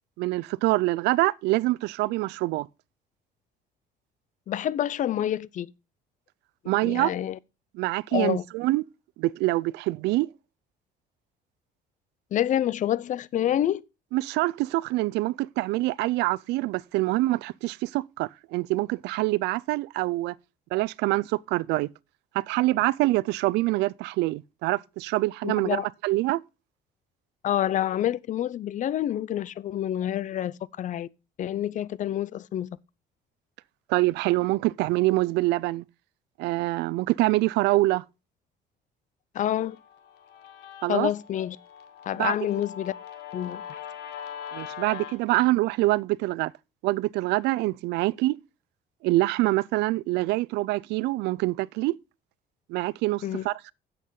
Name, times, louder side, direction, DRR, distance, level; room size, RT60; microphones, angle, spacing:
voice 1, 0.2-2.7 6.7-7.1 7.7-8.8 9.2-10.3 14.1-20.3 20.7-21.9 22.3-26.4 33.9-35.8 36.4-38.0 40.8-41.1 42.2-42.3 44.5-46.5 46.8-48.4 49.0-52.0 52.7-53.7, right 19 dB, 85° right, 0.4 m, -25 dB
voice 2, 4.5-5.7 6.6-7.4 8.1-8.4 12.3-13.8 25.4-25.9 27.4-31.1 31.4-32.7 39.3-39.8 40.9-41.6 42.1-42.9 43.3-43.6 53.2-53.5, left 11 dB, 50° left, 0.5 m, -27 dB
Guitar, 39.6-45.2, left 9 dB, 80° left, 1.5 m, -41 dB
9.2 x 7.5 x 3.8 m
cardioid pair, 110°, 17 cm